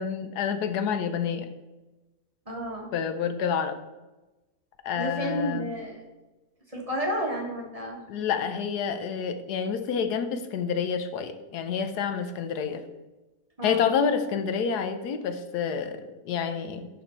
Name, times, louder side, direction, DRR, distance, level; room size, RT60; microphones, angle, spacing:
voice 1, 0.0-1.5 2.9-3.8 4.8-5.7 8.1-12.8 13.6-16.9, left 7 dB, 80° left, 9 dB, 1.2 m, -28 dB
voice 2, 2.5-2.9 4.9-6.0 6.7-8.0 13.6-13.9, equal, 20° right, -2 dB, 1.6 m, -31 dB
11.0 x 4.3 x 4.3 m, 1.1 s
omnidirectional pair, 1.7 m